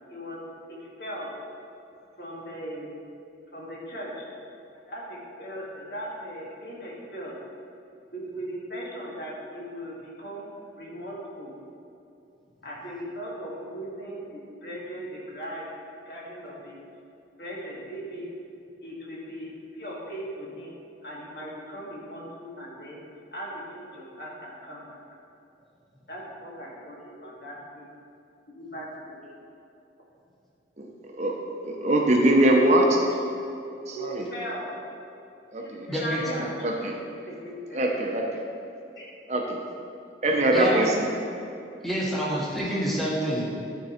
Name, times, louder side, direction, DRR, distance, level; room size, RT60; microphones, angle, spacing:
voice 1, 0.1-0.4 0.7-1.3 2.2-2.9 3.5-4.3 4.7-7.3 8.1-10.4 10.8-11.5 12.6-15.6 16.1-16.8 17.4-18.3 18.8-20.7 21.0-23.0 23.3-25.0 26.1-27.9 28.5-29.3 33.9-34.0 34.3-34.7 35.6-36.9 37.2-37.8 39.0-39.1, equal, 60° left, -5 dB, 2.0 m, -38 dB
voice 2, 31.6-33.0 33.9-34.2 35.5-35.9 36.2-36.4 36.6-36.9 37.7-38.3 39.3-39.6 40.2-41.1, right 1 dB, 40° right, 0 dB, 0.8 m, -22 dB
voice 3, 35.9-36.5 40.5-40.9 41.8-43.6, equal, ahead, -6 dB, 1.3 m, -28 dB
12.0 x 4.6 x 4.4 m, 2.7 s
head